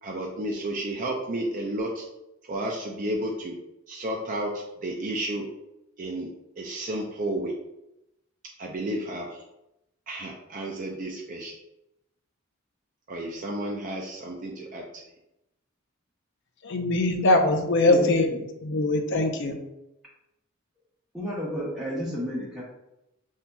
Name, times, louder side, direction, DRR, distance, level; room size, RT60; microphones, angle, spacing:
voice 1, 0.0-2.0 2.5-3.6 3.9-5.5 6.0-7.6 8.6-9.4 10.1-11.6 13.1-15.0, right 1 dB, 40° right, -1 dB, 0.5 m, -32 dB
voice 2, 16.6-18.3 18.6-19.6, left 2 dB, 60° left, 5 dB, 0.6 m, -22 dB
voice 3, 17.8-18.4 21.1-22.6, equal, ahead, -7 dB, 1.0 m, -31 dB
7.3 x 2.7 x 2.3 m, 0.89 s
head